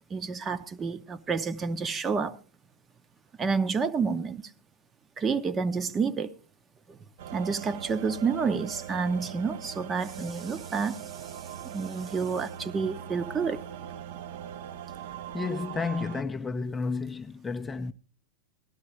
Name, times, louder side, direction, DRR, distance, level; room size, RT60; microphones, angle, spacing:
voice 1, 0.0-2.4 3.4-4.4 5.2-6.3 6.9-7.0 7.3-11.3 11.6-13.7, right 5 dB, 20° right, 0.8 m, -29 dB
sound 1, 7.2-16.2, right 9 dB, 55° right, 0.7 m, -41 dB
voice 2, 15.3-17.9, left 4 dB, 10° left, 0.6 m, -31 dB
17.0 x 13.0 x 3.1 m
figure-of-eight pair, 90°, 0 cm